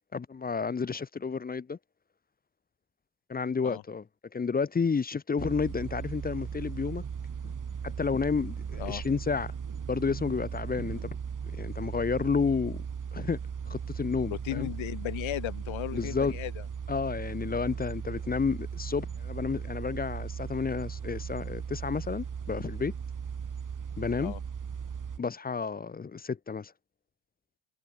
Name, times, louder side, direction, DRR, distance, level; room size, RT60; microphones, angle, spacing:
voice 1, 0.1-1.8 3.3-4.0 4.3-7.0 7.4-7.5 7.8-9.5 9.9-11.1 11.4-12.8 13.1-13.4 13.7-14.7 15.9-16.4 16.9-22.9 24.0-24.3 25.2-26.7, left 5 dB, 20° left, 0.5 m, -31 dB
sound 1, 5.4-25.2, right 7 dB, 40° right, 2.3 m, -37 dB
voice 2, 14.3-16.6 24.2-24.4, left 15 dB, 80° left, 1.2 m, -36 dB
cardioid pair, 95°, 46 cm